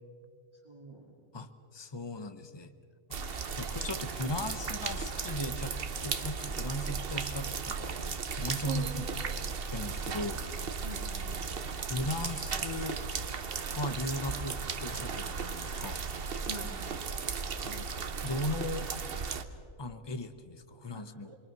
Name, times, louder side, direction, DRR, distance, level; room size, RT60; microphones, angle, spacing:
voice 1, 0.6-1.1 3.3-3.5 8.6-8.9 10.8-11.4 16.5-16.7 20.9-21.4, right 2 dB, 20° right, -2 dB, 2.5 m, -43 dB
voice 2, 1.3-2.7 3.1-5.7 6.0-8.9 9.7-10.4 11.9-13.0 13.8-16.0 17.6-17.9 18.2-18.9 19.8-21.3, left 1 dB, 20° left, 10 dB, 0.9 m, -37 dB
sound 1, 3.1-19.4, right 5 dB, 45° right, 1.1 m, -36 dB
28.0 x 23.0 x 6.1 m, 2.3 s
omnidirectional pair, 1.4 m